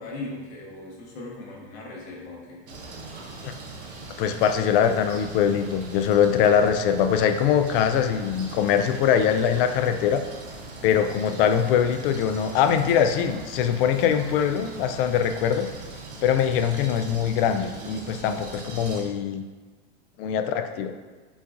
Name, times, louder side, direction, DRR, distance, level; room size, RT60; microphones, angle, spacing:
voice 1, 0.0-2.6, left 2 dB, 75° left, -2 dB, 1.3 m, -38 dB
sound 1, 2.7-19.0, right 3 dB, 85° right, 0.8 m, -40 dB
voice 2, 4.2-10.2 10.8-15.7 16.2-19.4 20.2-21.0, left 8 dB, 55° left, 8 dB, 0.4 m, -22 dB
7.0 x 2.5 x 2.4 m, 1.3 s
hypercardioid pair, 100°, 33 cm